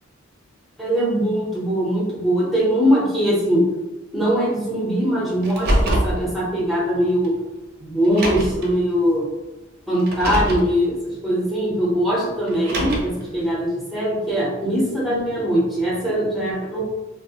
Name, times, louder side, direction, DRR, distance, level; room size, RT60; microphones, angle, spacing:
voice 1, 0.8-3.6 4.1-7.3 7.8-9.3 9.9-16.8, equal, ahead, -6 dB, 0.6 m, -21 dB
Car, 5.4-6.2 7.2-7.3 8.0-8.7 10.0-10.7 12.5-13.2, right 1 dB, 50° right, 0.5 m, -23 dB
2.4 x 2.0 x 2.7 m, 1.1 s
head